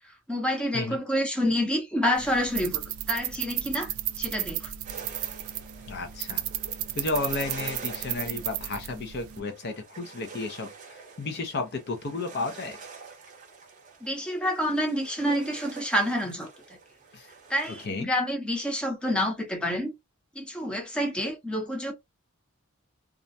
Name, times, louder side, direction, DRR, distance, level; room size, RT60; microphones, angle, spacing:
voice 1, 0.3-2.8 3.1-4.7 14.0-16.5 17.5-19.9 20.4-21.9, equal, 5° left, 0.6 m, -28 dB
sound 1, 2.1-9.4, right 12 dB, 75° right, 0.3 m, -34 dB
sound 2, 4.8-17.9, right 4 dB, 35° right, 0.7 m, -47 dB
voice 2, 5.9-6.4 6.9-12.8 17.1-17.3 17.8-18.1, left 3 dB, 50° left, 0.5 m, -33 dB
2.4 x 2.1 x 2.6 m
head